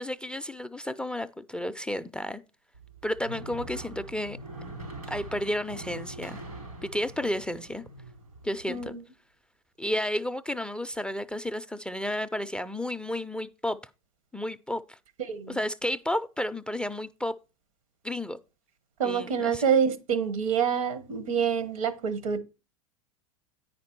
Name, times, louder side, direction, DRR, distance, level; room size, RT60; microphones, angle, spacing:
voice 1, 0.0-2.4 3.0-4.4 5.1-6.4 6.8-7.8 8.4-8.9 9.8-13.8 14.3-15.0 15.5-17.3 18.0-18.4 19.0-19.6, left 1 dB, 5° left, 0.4 m, -32 dB
sound 1, 2.7-8.9, right 2 dB, 90° right, 4.0 m, -43 dB
voice 2, 8.7-9.0 15.3-15.6 19.0-22.4, right 7 dB, 70° right, 1.2 m, -27 dB
9.3 x 5.2 x 4.4 m
hypercardioid pair, 90°, 18 cm